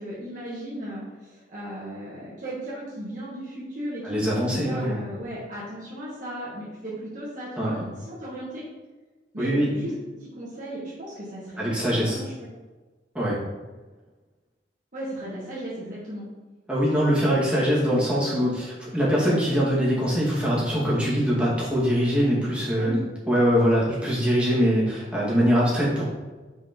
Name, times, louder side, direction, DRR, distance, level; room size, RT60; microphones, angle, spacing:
voice 1, 0.0-8.6 9.3-9.9 10.2-12.3 14.9-16.3 22.7-23.0, right 1 dB, 50° right, -7 dB, 1.6 m, -36 dB
voice 2, 4.0-5.0 7.6-7.8 9.4-9.7 11.6-12.2 13.1-13.4 16.7-23.0 23.3-26.0, equal, 5° right, -7 dB, 2.1 m, -23 dB
5.9 x 4.9 x 4.4 m, 1.3 s
head